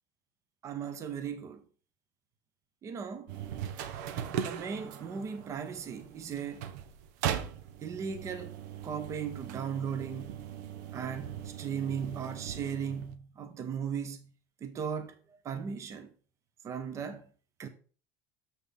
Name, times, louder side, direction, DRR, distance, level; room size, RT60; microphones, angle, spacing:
voice 1, 0.6-1.6 2.8-3.3 4.4-6.7 7.8-8.6 8.8-10.4 10.9-14.3 14.6-15.1 15.4-16.1 16.6-17.3 17.6-17.7, right 7 dB, 30° right, 0.9 m, -37 dB
sound 1, 3.3-13.2, right 9 dB, 80° right, 0.8 m, -39 dB
7.1 x 6.0 x 3.7 m
cardioid pair, 140°, 9 cm